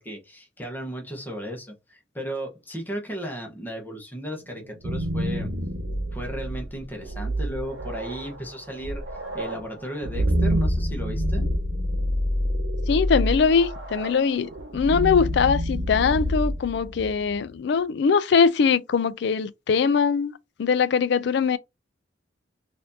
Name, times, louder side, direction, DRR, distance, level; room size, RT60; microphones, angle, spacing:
voice 1, 0.0-5.5 6.1-9.0 9.3-11.4, equal, 10° left, 1.1 m, -35 dB
sound 1, 4.6-17.4, equal, 90° right, 1.0 m, -27 dB
voice 2, 12.9-20.3 20.6-21.6, left 5 dB, 60° left, 0.4 m, -22 dB
4.1 x 2.7 x 2.7 m
head